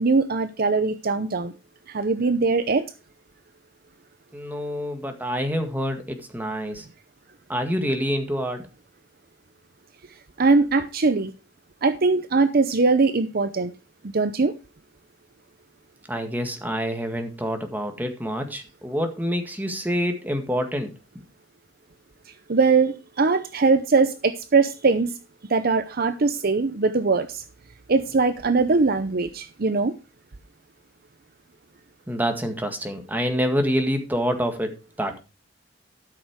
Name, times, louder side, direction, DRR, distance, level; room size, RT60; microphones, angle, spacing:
voice 1, 0.0-1.5 1.9-2.9 10.4-11.3 11.8-13.7 14.1-14.5 22.5-25.1 25.5-27.4 27.9-29.9, right 4 dB, 50° right, 0.7 m, -21 dB
voice 2, 4.3-6.8 7.5-8.7 16.1-20.9 32.1-35.2, equal, 10° right, 1.9 m, -27 dB
12.5 x 6.5 x 4.7 m
head